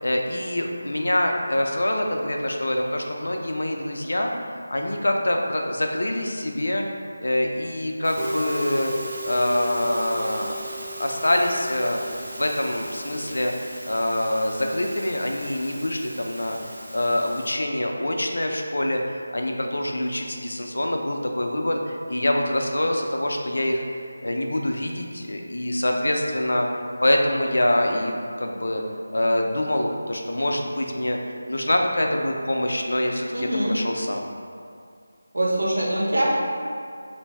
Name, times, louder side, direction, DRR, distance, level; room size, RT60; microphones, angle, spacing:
voice 1, 0.0-6.9 7.2-8.9 9.2-10.6 11.0-12.0 12.3-13.5 13.8-16.6 16.9-23.8 24.2-26.7 27.0-28.8 29.1-31.2 31.5-34.2, left 1 dB, 80° left, 2 dB, 0.4 m, -25 dB
Musical instrument, 8.0-17.5, right 1 dB, 40° right, 0.6 m, -37 dB
voice 2, 33.3-33.7 35.3-36.3, right 1 dB, 85° right, -4 dB, 0.8 m, -23 dB
3.1 x 2.6 x 3.3 m, 2.3 s
figure-of-eight pair, 170°, 0 cm